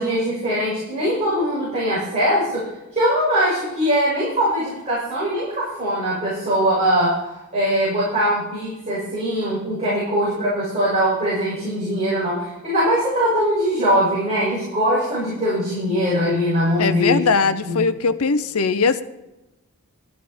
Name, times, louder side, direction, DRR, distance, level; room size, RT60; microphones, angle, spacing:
voice 1, 0.0-17.2 17.6-17.9, equal, 30° right, -9 dB, 5.8 m, -21 dB
voice 2, 16.8-19.0, left 4 dB, 85° left, 13 dB, 0.7 m, -20 dB
13.0 x 12.5 x 4.3 m, 0.97 s
head